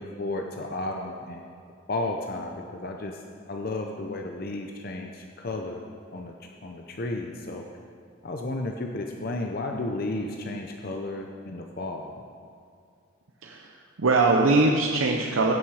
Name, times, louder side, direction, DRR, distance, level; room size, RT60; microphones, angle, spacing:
voice 1, 0.0-1.5 1.9-3.2 3.5-5.8 6.1-6.3 6.6-7.6 8.2-12.2, left 2 dB, 50° left, 2 dB, 0.6 m, -33 dB
voice 2, 13.4-15.5, right 3 dB, 90° right, 1 dB, 0.7 m, -22 dB
16.0 x 6.3 x 4.8 m, 2.3 s
head